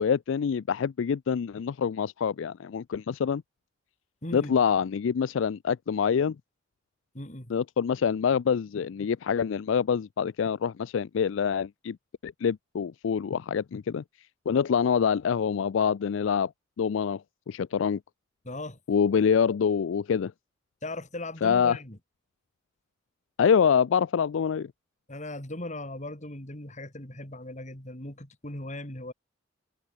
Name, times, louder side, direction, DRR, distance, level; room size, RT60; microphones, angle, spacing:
voice 1, 0.0-3.4 4.3-6.4 7.5-12.0 12.2-14.0 14.5-16.5 16.8-17.2 17.5-18.0 18.9-20.3 21.4-21.8 23.4-24.7, left 7 dB, 75° left, 0.4 m, -25 dB
voice 2, 4.2-4.6 7.1-7.5 18.4-18.8 20.8-22.0 25.1-29.1, left 1 dB, 40° left, 4.5 m, -38 dB
head